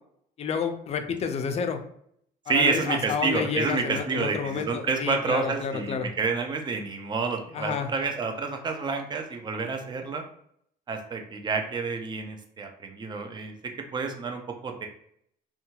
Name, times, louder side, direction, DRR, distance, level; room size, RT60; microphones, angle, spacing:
voice 1, 0.4-1.8 2.5-6.1 7.5-7.9, left 6 dB, 40° left, 7 dB, 0.4 m, -30 dB
voice 2, 2.5-10.2 10.9-13.5 13.9-14.9, right 4 dB, 25° right, 4 dB, 0.4 m, -29 dB
2.7 x 2.2 x 2.8 m, 0.69 s
cardioid pair, 110°, 17 cm